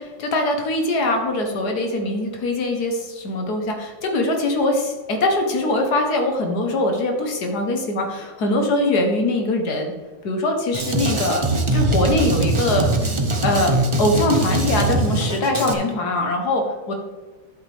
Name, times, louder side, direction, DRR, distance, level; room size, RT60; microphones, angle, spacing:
voice 1, 0.0-9.9 10.2-11.4 11.7-13.2 13.4-13.7 14.0-16.9, left 2 dB, 60° left, 3 dB, 1.7 m, -22 dB
Drum kit, 10.7-15.7, right 2 dB, 50° right, 0.3 m, -21 dB
11.0 x 8.2 x 3.5 m, 1.3 s
omnidirectional pair, 2.0 m